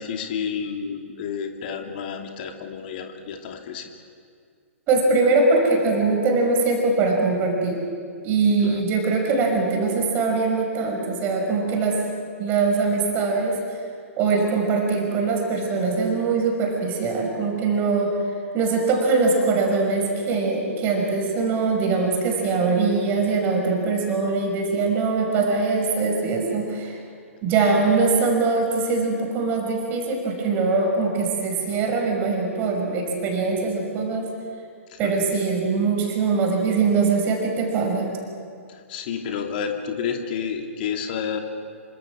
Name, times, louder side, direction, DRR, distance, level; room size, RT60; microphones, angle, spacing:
voice 1, 0.0-3.9 8.6-8.8 27.6-27.8 34.9-35.1 38.7-41.4, left 7 dB, 40° left, 4 dB, 2.8 m, -30 dB
voice 2, 4.9-7.8 8.2-12.0 12.4-13.6 14.2-18.1 18.5-27.0 27.4-34.3 35.0-38.1, right 4 dB, 25° right, 1 dB, 5.9 m, -22 dB
27.0 x 25.0 x 6.3 m, 2.2 s
figure-of-eight pair, 115°, 8 cm